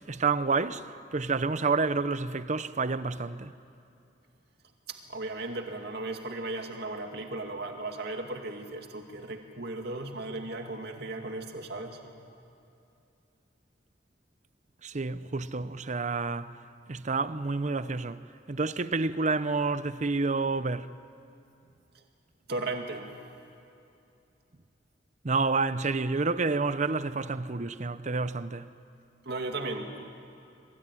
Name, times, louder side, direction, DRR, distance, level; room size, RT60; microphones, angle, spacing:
voice 1, 0.0-3.5 14.8-16.6 16.9-20.9 25.2-28.7, right 4 dB, 40° right, 0.7 m, -29 dB
voice 2, 5.1-12.0 22.5-23.2 29.2-30.0, right 2 dB, 65° right, 2.4 m, -36 dB
26.0 x 22.5 x 9.9 m
head